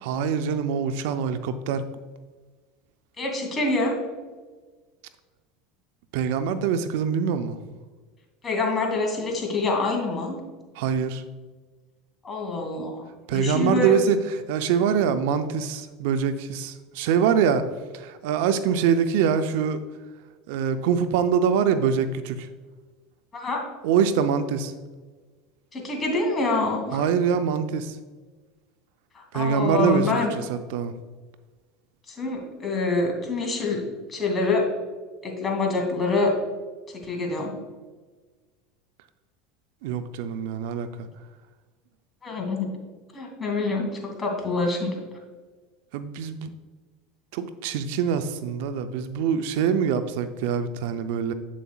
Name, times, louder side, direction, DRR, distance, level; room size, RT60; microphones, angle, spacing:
voice 1, 0.0-1.9 6.1-7.6 10.8-11.2 13.3-17.7 17.9-19.8 20.5-22.5 23.8-24.7 26.9-28.0 29.3-30.9 39.8-40.9 45.9-46.5 47.3-51.3, right 7 dB, 70° right, 11 dB, 0.5 m, -24 dB
voice 2, 3.2-3.9 8.4-10.4 12.2-13.0 13.3-13.9 23.3-23.6 25.7-27.0 29.3-30.3 32.1-33.8 34.1-34.6 35.2-36.3 37.0-37.5 42.2-42.7 43.1-43.9 44.2-44.9, left 3 dB, 25° left, 1 dB, 2.3 m, -26 dB
8.3 x 7.1 x 2.3 m, 1.4 s
hypercardioid pair, 85°, 0 cm